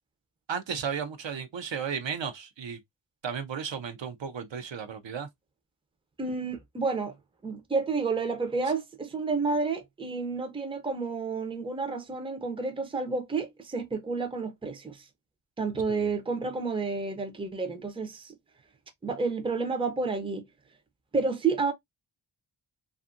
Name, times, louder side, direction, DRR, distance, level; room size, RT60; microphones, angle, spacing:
voice 1, 0.5-2.8 3.2-5.3 15.9-16.1, right 7 dB, 65° right, 0.7 m, -34 dB
voice 2, 6.2-7.2 7.4-15.1 15.6-18.4 19.0-20.5 21.1-21.7, right 4 dB, 10° right, 0.5 m, -30 dB
2.6 x 2.5 x 2.4 m
wide cardioid pair, 80°, 49 cm